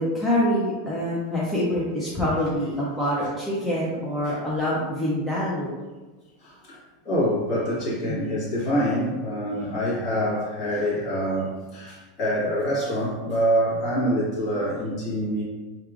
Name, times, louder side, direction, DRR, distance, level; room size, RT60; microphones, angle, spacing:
voice 1, 0.0-5.7 8.1-8.2, left 1 dB, ahead, -8 dB, 0.4 m, -25 dB
voice 2, 6.4-6.8 7.0-15.4, equal, 30° left, -7 dB, 1.3 m, -25 dB
4.7 x 2.8 x 2.4 m, 1.3 s
supercardioid pair, 180°, 0 cm